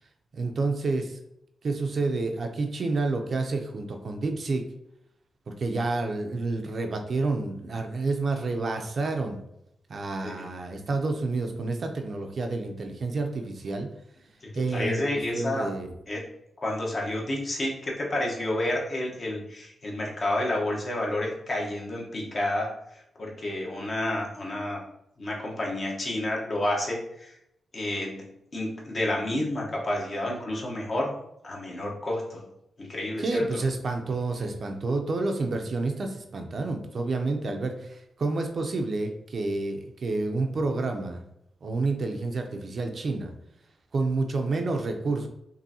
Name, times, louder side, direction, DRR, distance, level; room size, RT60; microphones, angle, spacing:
voice 1, 0.3-1.2 1.6-4.7 5.5-9.4 9.9-13.9 14.6-15.9 33.2-41.2 41.6-43.3 43.9-45.3, right 3 dB, 50° right, 4 dB, 0.5 m, -29 dB
voice 2, 14.4-15.7 16.1-16.3 16.6-24.8 25.2-27.3 27.7-28.2 28.5-31.1 31.4-32.5 32.8-33.6, left 1 dB, 40° left, -2 dB, 1.0 m, -30 dB
5.3 x 2.7 x 2.7 m, 0.80 s
wide cardioid pair, 115°, 0 cm